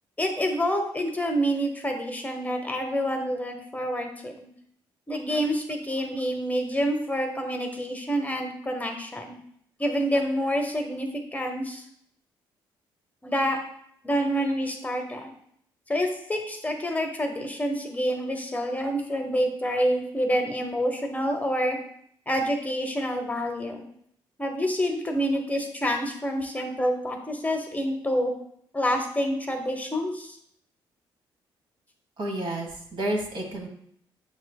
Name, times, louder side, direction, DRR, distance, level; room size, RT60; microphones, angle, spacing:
voice 1, 0.2-4.5 5.1-9.3 9.8-11.8 13.2-13.6 14.0-15.3 15.9-21.8 22.3-23.8 24.4-28.3 28.7-30.4, equal, 15° left, 4 dB, 0.7 m, -27 dB
voice 2, 32.2-33.7, right 1 dB, 60° right, 1 dB, 1.2 m, -30 dB
7.2 x 3.1 x 2.3 m, 0.69 s
supercardioid pair, 70°, 10 cm